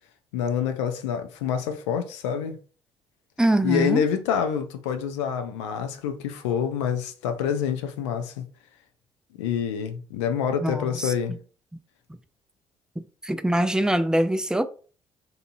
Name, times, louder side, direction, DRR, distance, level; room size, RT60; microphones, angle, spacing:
voice 1, 0.3-2.6 3.6-8.4 9.4-11.4, left 8 dB, 85° left, 0.4 m, -27 dB
voice 2, 3.4-4.0 10.6-11.4 13.0-14.6, right 1 dB, 5° right, 0.3 m, -24 dB
2.7 x 2.6 x 2.6 m
hypercardioid pair, 50°, 14 cm